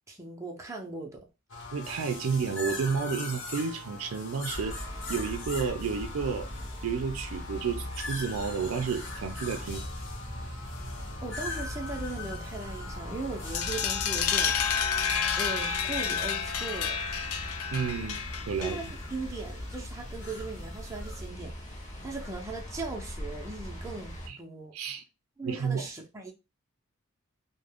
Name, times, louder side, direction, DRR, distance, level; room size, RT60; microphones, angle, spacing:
voice 1, 0.1-1.3 11.2-14.5 15.4-17.0 18.6-24.7 25.4-26.3, right 3 dB, 15° right, 0.5 m, -39 dB
sound 1, 1.5-21.3, left 3 dB, 60° left, 0.9 m, -42 dB
voice 2, 1.7-4.8 5.1-6.5 6.8-9.9 17.7-18.9 24.3-24.4 24.7-25.0 25.4-25.9, right 5 dB, 85° right, 0.4 m, -31 dB
sound 2, 4.5-24.3, left 1 dB, 35° left, 0.7 m, -40 dB
sound 3, 13.5-19.1, left 7 dB, 85° left, 0.4 m, -30 dB
2.4 x 2.1 x 3.4 m
head